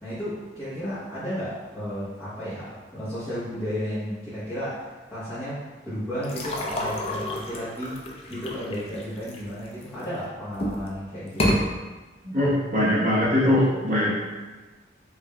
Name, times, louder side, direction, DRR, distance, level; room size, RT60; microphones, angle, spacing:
voice 1, 0.0-8.0 8.3-11.6, equal, 10° left, -15 dB, 1.0 m, -33 dB
sound 1, 6.2-10.0 10.5-10.9 11.3-11.6, left 1 dB, 35° left, 0.4 m, -29 dB
voice 2, 12.2-14.1, left 1 dB, 45° right, -7 dB, 1.0 m, -21 dB
4.8 x 2.5 x 2.2 m, 1.2 s
head